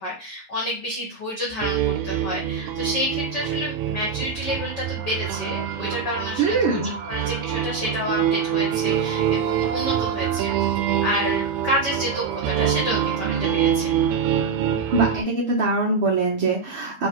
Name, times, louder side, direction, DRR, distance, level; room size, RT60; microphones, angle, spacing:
voice 1, 0.0-6.8 7.1-10.8 11.0-13.9, left 1 dB, 70° left, -3 dB, 1.0 m, -29 dB
sound 1, 1.6-15.2, right 10 dB, 90° right, 2.0 m, -25 dB
voice 2, 6.4-6.9 14.9-17.1, right 3 dB, 60° right, -5 dB, 1.4 m, -22 dB
4.8 x 2.3 x 4.4 m, 0.35 s
omnidirectional pair, 3.4 m